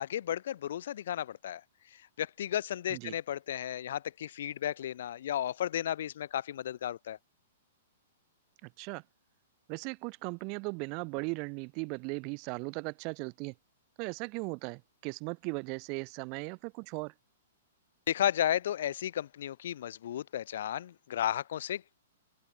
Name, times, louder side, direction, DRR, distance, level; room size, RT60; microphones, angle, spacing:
voice 1, 0.0-1.6 2.2-7.2 18.1-22.0, left 11 dB, 65° left, 0.9 m, -33 dB
voice 2, 8.6-9.0 9.7-13.5 14.0-17.1, right 33 dB, 40° right, 0.7 m, -38 dB
open air
hypercardioid pair, 135°, 0 cm